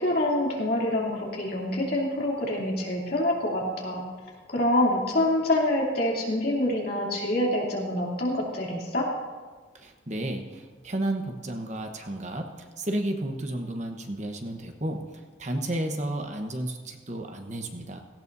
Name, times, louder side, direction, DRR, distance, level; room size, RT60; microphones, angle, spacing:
voice 1, 0.0-4.0 4.5-9.1, left 1 dB, 50° left, -3 dB, 2.9 m, -26 dB
voice 2, 9.7-18.0, right 1 dB, 35° right, 4 dB, 1.1 m, -32 dB
17.5 x 16.0 x 2.7 m, 1.4 s
head